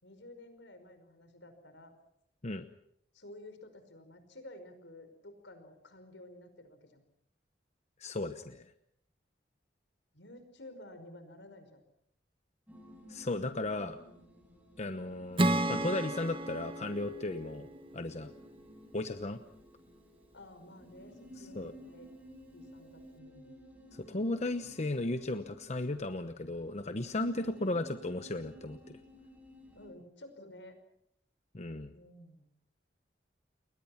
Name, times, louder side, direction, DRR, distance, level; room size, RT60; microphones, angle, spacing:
voice 1, 0.0-1.9 3.1-7.0 10.1-11.8 20.3-22.1 22.5-23.7 29.8-30.8 31.9-32.6, left 1 dB, 85° left, 9 dB, 5.3 m, -52 dB
voice 2, 8.0-8.7 13.1-14.0 14.8-17.7 17.9-18.3 18.9-19.4 21.5-21.7 23.9-29.0 31.5-31.9, left 2 dB, 40° left, 9 dB, 1.0 m, -35 dB
sound 1, 12.7-29.9, equal, 10° right, 7.1 m, -55 dB
Acoustic guitar / Strum, 15.4-18.8, right 1 dB, 30° right, 1.4 m, -33 dB
30.0 x 22.0 x 5.9 m, 0.74 s
head